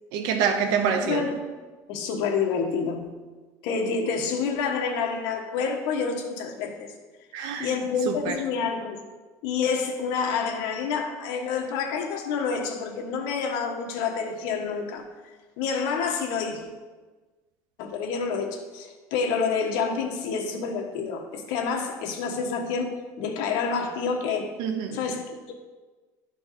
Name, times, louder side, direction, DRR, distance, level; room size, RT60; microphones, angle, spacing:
voice 1, 0.1-1.2 7.3-7.7 8.1-8.4 24.6-25.0, right 7 dB, 70° right, 6 dB, 0.8 m, -26 dB
voice 2, 1.0-1.4 1.9-3.1 3.6-6.9 7.6-9.0 9.4-15.0 15.6-16.7 17.8-24.5 24.9-25.5, left 5 dB, 70° left, 2 dB, 1.3 m, -28 dB
11.5 x 4.6 x 4.2 m, 1.3 s
cardioid pair, 155°, 7 cm